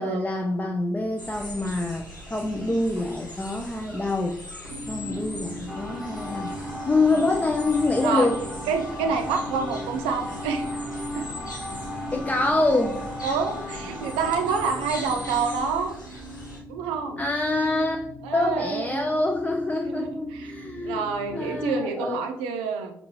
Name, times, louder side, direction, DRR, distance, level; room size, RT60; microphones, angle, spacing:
voice 1, 0.0-4.4 4.9-6.5 6.9-8.4 12.1-13.0 17.2-21.0 21.3-22.3, left 2 dB, 15° left, 1 dB, 0.4 m, -26 dB
sound 1, 1.2-16.6, left 1 dB, 90° left, 0.5 m, -41 dB
sound 2, 4.7-21.7, left 1 dB, 50° left, 1.4 m, -39 dB
sound 3, 5.7-15.5, left 1 dB, 10° right, 1.1 m, -37 dB
voice 2, 8.7-10.7 11.1-11.3 13.2-15.9 16.7-17.2 18.2-19.1 19.9-20.5 20.8-22.9, right 5 dB, 65° right, 5 dB, 0.5 m, -28 dB
5.8 x 2.6 x 3.0 m, 0.73 s
figure-of-eight pair, 40°, 10 cm